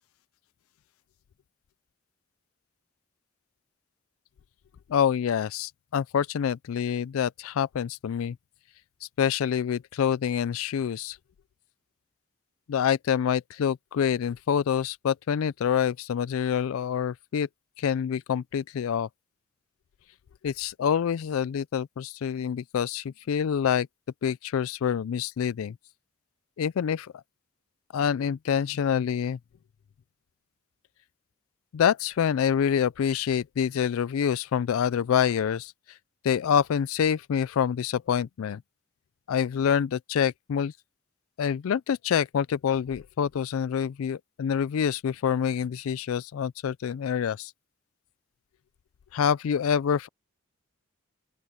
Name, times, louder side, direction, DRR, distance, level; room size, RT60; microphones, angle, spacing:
voice 1, 4.9-8.4 9.0-11.2 12.7-17.5 17.8-19.1 20.4-23.9 24.2-25.7 26.6-27.1 27.9-29.4 31.7-35.7 36.2-38.6 39.3-40.7 41.4-47.5 49.1-50.1, left 8 dB, 70° left, 0.3 m, -26 dB
open air
head